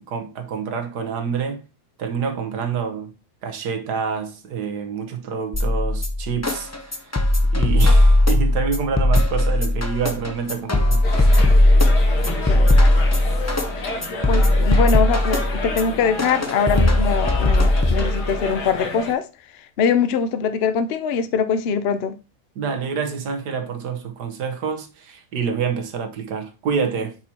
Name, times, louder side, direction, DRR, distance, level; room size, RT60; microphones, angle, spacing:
voice 1, 0.0-1.7 2.0-3.1 3.4-7.1 7.5-11.5 22.5-27.2, right 6 dB, 75° right, 1.6 m, -27 dB
sound 1, 5.5-18.5, left 1 dB, 25° left, 0.3 m, -18 dB
sound 2, 11.0-19.1, left 2 dB, 80° left, 1.9 m, -30 dB
voice 2, 14.3-19.3 19.8-22.2, left 6 dB, 60° left, 0.7 m, -22 dB
6.0 x 4.4 x 4.2 m
omnidirectional pair, 1.7 m